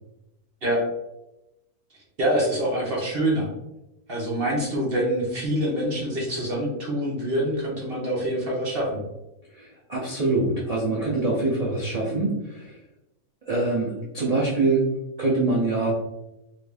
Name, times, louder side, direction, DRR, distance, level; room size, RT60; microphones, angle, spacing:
voice 1, 2.2-3.5 4.1-9.0, right 1 dB, 45° right, -4 dB, 0.9 m, -25 dB
voice 2, 9.5-12.7 13.5-14.9 15.2-15.9, right 2 dB, 75° right, -6 dB, 0.3 m, -24 dB
2.9 x 2.6 x 3.3 m, 0.94 s
omnidirectional pair, 1.6 m